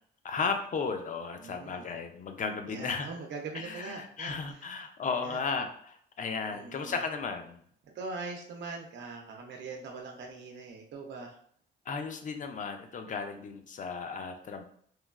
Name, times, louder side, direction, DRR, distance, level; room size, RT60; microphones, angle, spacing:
voice 1, 0.2-3.1 3.5-7.6 11.9-14.6, left 5 dB, 40° left, 6 dB, 0.5 m, -35 dB
voice 2, 1.4-2.0 2.7-4.7 5.2-5.4 6.5-7.0 7.8-11.4, right 4 dB, 65° right, 2 dB, 0.6 m, -42 dB
3.1 x 2.2 x 2.2 m, 0.62 s
cardioid pair, 90°, 20 cm